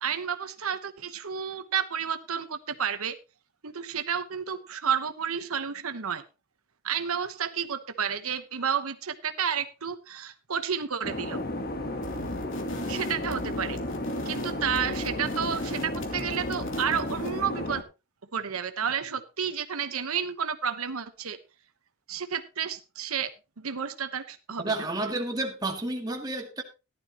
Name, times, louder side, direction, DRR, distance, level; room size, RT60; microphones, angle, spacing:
voice 1, 0.0-3.2 3.6-6.2 6.8-11.4 12.9-13.8 14.2-17.8 18.3-21.4 22.1-23.3 23.6-24.7, right 7 dB, 85° right, 1.0 m, -31 dB
sound 1, 11.0-17.8, left 1 dB, 45° left, 1.3 m, -33 dB
sound 2, 12.0-17.5, left 1 dB, 60° left, 2.9 m, -41 dB
voice 2, 24.6-26.6, right 2 dB, 15° right, 1.9 m, -31 dB
15.0 x 11.5 x 3.0 m
head